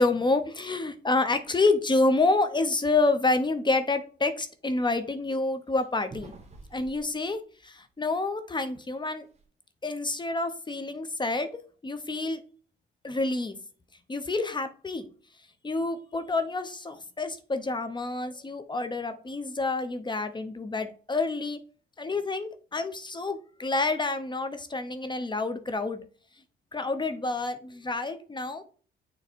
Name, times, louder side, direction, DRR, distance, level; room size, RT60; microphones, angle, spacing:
voice 1, 0.0-6.3 6.7-9.3 9.8-11.5 11.8-12.4 13.0-13.6 14.1-15.1 15.6-21.6 22.0-26.0 26.7-28.6, left 3 dB, 25° left, 9 dB, 0.8 m, -28 dB
sound 1, 1.4-1.7 2.0-2.4 2.8-2.9 3.4-3.5 5.8-8.2 8.6-8.7 9.0-9.4, right 3 dB, 35° right, 1.4 m, -49 dB
6.7 x 3.1 x 4.5 m, 0.40 s
cardioid pair, 90°, 20 cm